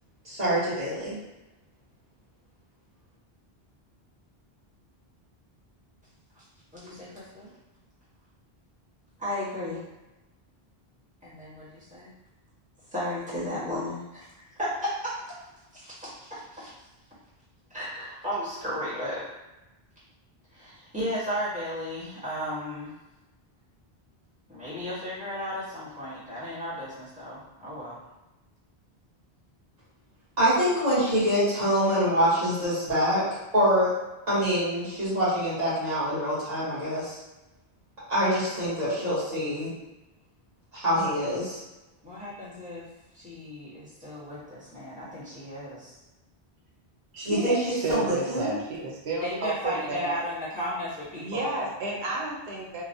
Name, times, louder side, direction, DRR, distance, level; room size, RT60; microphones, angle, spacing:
voice 1, 0.2-1.2 30.4-33.2 33.5-33.9 34.3-37.2 38.1-39.7 40.7-41.6 47.2-48.6, equal, 45° right, -12 dB, 1.3 m, -25 dB
voice 2, 6.7-7.5 9.2-9.8 11.2-12.1 12.9-15.4 15.7-16.7 17.7-19.2 20.5-22.9 24.5-28.0 42.0-42.9 43.1-45.9 49.2-51.7, equal, 10° right, -11 dB, 1.2 m, -34 dB
voice 3, 47.1-50.1 51.1-52.8, right 2 dB, 90° right, -3 dB, 1.0 m, -32 dB
2.9 x 2.1 x 2.6 m, 1.0 s
omnidirectional pair, 1.0 m